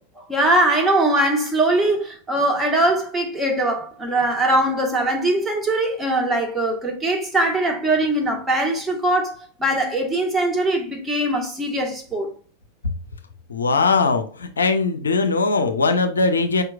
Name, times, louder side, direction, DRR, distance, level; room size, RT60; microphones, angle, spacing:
voice 1, 0.3-9.3 9.6-12.3, right 1 dB, 10° right, 1.3 m, -21 dB
voice 2, 13.5-16.6, left 4 dB, 70° left, 0.5 m, -20 dB
5.1 x 4.4 x 2.3 m
figure-of-eight pair, 90°, 0 cm